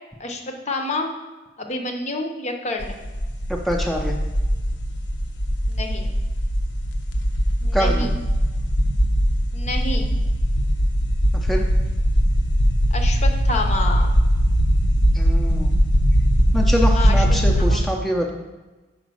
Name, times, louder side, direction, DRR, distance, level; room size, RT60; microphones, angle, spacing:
voice 1, 0.2-1.1 1.6-3.0 5.7-6.1 7.6-8.1 9.5-10.1 12.9-14.1 16.9-17.2 17.6-17.8, left 2 dB, 40° left, 4 dB, 0.7 m, -28 dB
sound 1, 2.8-17.7, equal, 70° left, 0.7 m, -20 dB
voice 2, 3.5-4.2 7.7-8.1 11.4-11.7 15.1-15.7 16.5-18.3, equal, ahead, -1 dB, 0.6 m, -24 dB
5.1 x 4.9 x 6.2 m, 1.2 s
head